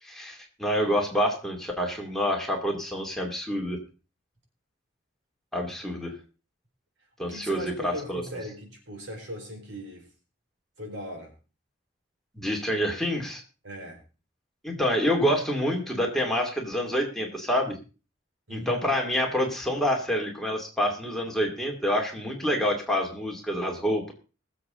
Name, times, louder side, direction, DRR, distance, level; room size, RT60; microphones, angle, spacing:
voice 1, 0.0-3.8 5.5-6.1 7.2-8.2 12.4-13.4 14.6-17.8 18.5-24.1, equal, ahead, 0 dB, 2.6 m, -27 dB
voice 2, 7.2-10.1 10.8-11.3 13.6-14.0 18.5-18.9, equal, 80° right, 2 dB, 4.7 m, -39 dB
21.5 x 7.5 x 3.8 m, 0.33 s
head